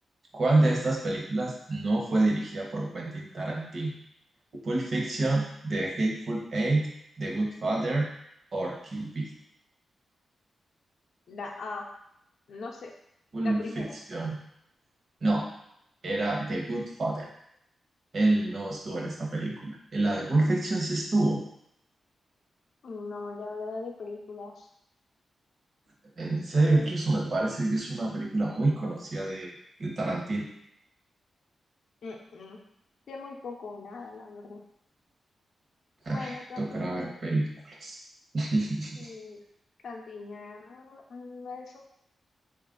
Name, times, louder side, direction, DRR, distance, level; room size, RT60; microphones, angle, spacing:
voice 1, 0.3-3.9 4.5-6.9 7.2-8.1 8.5-9.3 13.3-14.4 15.2-15.5 16.0-17.3 18.1-21.4 26.2-29.5 29.8-30.5 36.0-38.0 38.3-39.1, right 2 dB, 45° right, -1 dB, 0.9 m, -28 dB
voice 2, 11.3-11.9 12.5-12.9 13.4-14.0 22.8-24.7 26.5-26.9 32.0-32.6 33.1-34.6 36.1-37.1 39.0-39.4 39.8-41.8, left 3 dB, 65° left, 1 dB, 0.5 m, -40 dB
4.0 x 2.4 x 3.7 m, 0.77 s
wide cardioid pair, 130°, 0 cm